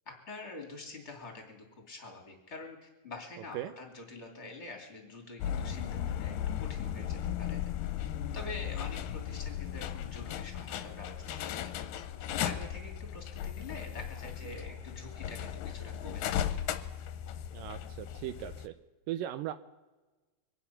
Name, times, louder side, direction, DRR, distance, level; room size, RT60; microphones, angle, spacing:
voice 1, 0.1-7.6 8.3-11.7 12.4-16.4, left 3 dB, 20° left, 1 dB, 2.8 m, -46 dB
sound 1, 5.4-18.7, left 10 dB, 80° left, 2.3 m, -36 dB
voice 2, 17.5-18.7 19.1-19.5, right 12 dB, 80° right, 10 dB, 2.2 m, -38 dB
24.5 x 9.3 x 5.8 m, 1.2 s
omnidirectional pair, 4.1 m